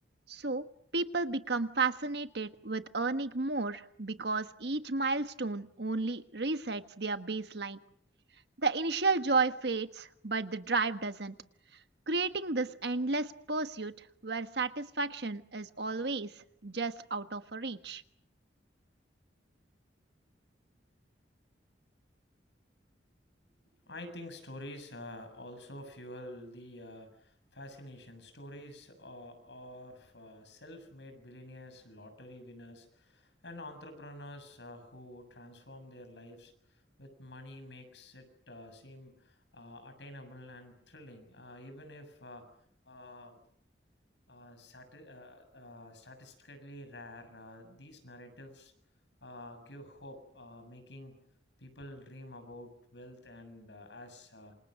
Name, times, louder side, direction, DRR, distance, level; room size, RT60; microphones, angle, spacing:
voice 1, 0.3-0.7 0.9-7.8 8.6-11.3 12.1-18.0, right 3 dB, 65° right, 9 dB, 1.4 m, -33 dB
voice 2, 23.9-42.5 42.9-43.4 44.3-48.7 49.2-51.2 51.6-54.5, left 1 dB, 80° left, 9 dB, 7.1 m, -49 dB
28.0 x 26.5 x 6.5 m, 0.69 s
head